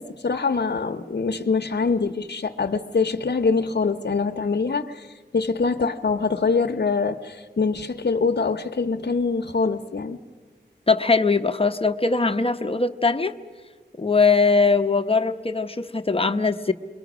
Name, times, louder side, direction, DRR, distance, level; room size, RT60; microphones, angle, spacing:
voice 1, 0.0-10.2, left 4 dB, 65° left, 4 dB, 0.9 m, -24 dB
voice 2, 10.9-13.3 14.0-16.7, left 4 dB, 30° left, 6 dB, 0.9 m, -21 dB
28.5 x 22.5 x 6.1 m, 1.5 s
wide cardioid pair, 85°, 19 cm